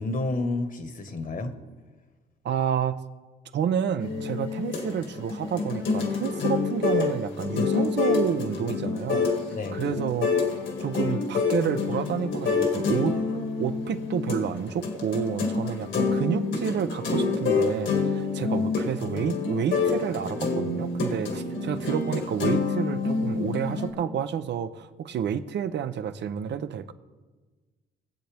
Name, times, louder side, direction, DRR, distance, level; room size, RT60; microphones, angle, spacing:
voice 1, 0.0-1.5 9.5-9.8, left 2 dB, 40° left, 8 dB, 1.4 m, -30 dB
voice 2, 2.4-3.0 3.5-9.3 9.7-10.3 10.8-13.2 13.6-26.9, right 8 dB, 60° right, 12 dB, 0.7 m, -29 dB
sound 1, 4.0-23.9, left 4 dB, 70° left, 2.2 m, -27 dB
21.5 x 7.7 x 3.5 m, 1.3 s
cardioid pair, 90°, 20 cm